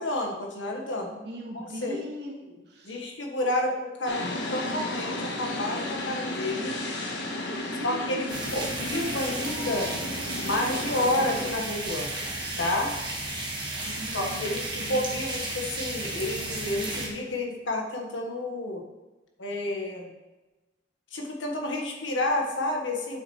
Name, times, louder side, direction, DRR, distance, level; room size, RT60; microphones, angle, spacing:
voice 1, 0.0-1.1 1.5-2.0 2.8-4.2 4.5-6.7 7.8-9.9 10.4-12.1 12.6-12.9 14.1-14.6 14.9-18.8 19.4-20.1 21.1-23.2, left 1 dB, 85° left, 1 dB, 1.5 m, -30 dB
voice 2, 1.0-3.0 7.3-8.6 13.7-15.2, equal, 60° right, 0 dB, 1.6 m, -40 dB
sound 1, 4.0-11.5, left 2 dB, 65° left, 1.3 m, -33 dB
sound 2, 8.3-17.1, right 2 dB, 25° right, 1.6 m, -33 dB
9.1 x 7.2 x 3.2 m, 1.1 s
head